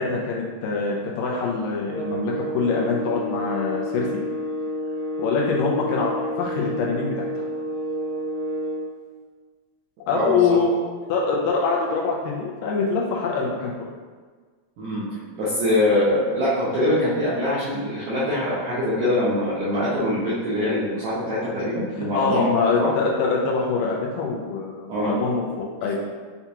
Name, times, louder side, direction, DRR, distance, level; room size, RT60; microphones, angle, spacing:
voice 1, 0.0-4.1 5.2-7.4 10.1-10.8 11.1-13.7 22.1-25.9, left 4 dB, 80° left, -2 dB, 2.1 m, -24 dB
sound 1, 1.9-8.9, equal, 60° right, 1.1 m, -29 dB
voice 2, 15.4-22.5 22.8-22.9 24.9-25.1, left 1 dB, 80° right, -9 dB, 1.6 m, -23 dB
6.9 x 2.3 x 2.8 m, 1.5 s
omnidirectional pair, 4.1 m